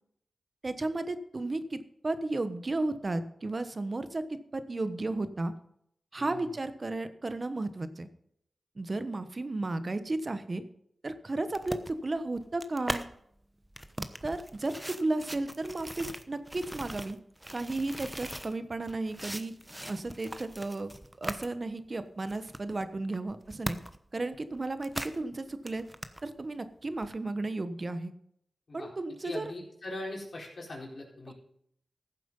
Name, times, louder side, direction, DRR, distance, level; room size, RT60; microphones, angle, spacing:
voice 1, 0.6-5.5 6.1-8.1 8.8-10.6 11.0-13.1 14.0-17.2 17.5-19.5 19.9-20.9 21.2-23.8 24.1-25.8 26.2-28.1 28.7-29.5 31.3-31.4, right 2 dB, 50° right, 11 dB, 1.2 m, -34 dB
voice 2, 6.2-6.5 28.7-28.9 29.2-31.3, left 2 dB, 60° left, -2 dB, 4.4 m, -40 dB
sound 1, 11.5-13.1 13.6-18.5 18.9-21.5 21.9-22.0 22.3-24.1 24.3-25.2 25.5-26.2 27.0-27.1, right 1 dB, 15° right, 1.0 m, -40 dB
14.5 x 7.7 x 5.5 m, 0.72 s
cardioid pair, 45°, 0 cm